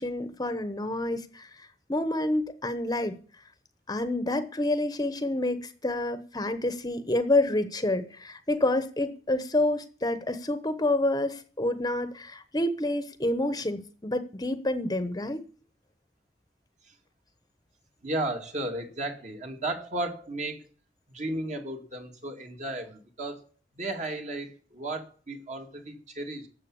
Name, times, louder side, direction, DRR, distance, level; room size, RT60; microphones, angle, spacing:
voice 1, 0.0-3.2 3.9-15.4, left 1 dB, 20° left, 1.0 m, -28 dB
voice 2, 18.0-20.7 21.1-23.5 23.7-26.5, right 2 dB, 45° right, 2.3 m, -34 dB
12.5 x 7.5 x 8.6 m
head